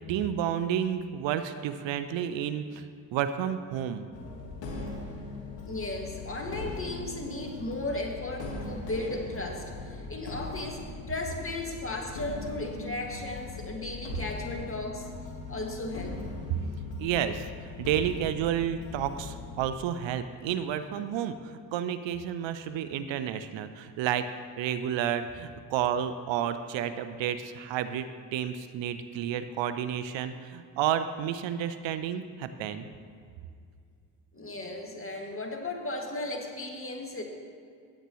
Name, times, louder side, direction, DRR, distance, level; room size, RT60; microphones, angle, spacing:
voice 1, 0.1-2.9 3.1-4.1 17.0-24.3 24.6-32.9, right 9 dB, 75° right, 11 dB, 0.7 m, -31 dB
sound 1, 4.1-19.7, left 3 dB, 75° left, 1.9 m, -40 dB
voice 2, 5.6-10.8 11.1-15.1 15.5-16.2 34.3-37.2, left 2 dB, 30° left, 1 dB, 2.2 m, -35 dB
16.5 x 8.2 x 3.1 m, 2.2 s
hypercardioid pair, 45°, 45 cm